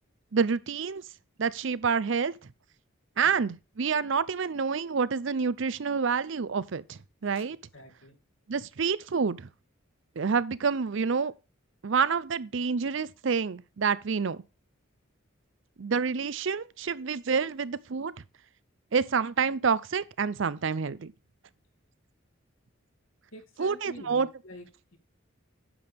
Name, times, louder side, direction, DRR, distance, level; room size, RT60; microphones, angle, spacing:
voice 1, 0.3-1.0 1.4-2.3 3.2-7.6 8.5-9.5 10.2-11.3 11.8-14.4 15.8-18.1 18.9-21.1 23.6-24.3, right 5 dB, 65° right, 0.5 m, -28 dB
voice 2, 7.7-8.2 23.3-25.0, left 1 dB, 75° left, 2.5 m, -48 dB
9.8 x 7.0 x 3.5 m
head